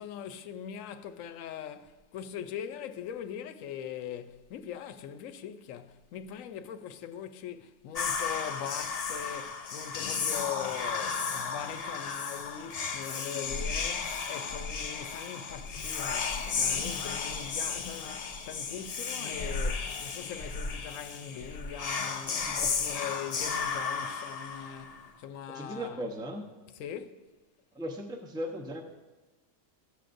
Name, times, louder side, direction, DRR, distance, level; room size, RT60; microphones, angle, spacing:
voice 1, 0.0-26.0 26.8-27.2, left 8 dB, 85° left, 1.0 m, -41 dB
Whispering, 8.0-25.1, left 5 dB, 65° left, 0.4 m, -34 dB
voice 2, 25.5-26.5 27.7-28.8, equal, 5° right, 0.6 m, -37 dB
14.5 x 7.7 x 2.6 m
omnidirectional pair, 1.3 m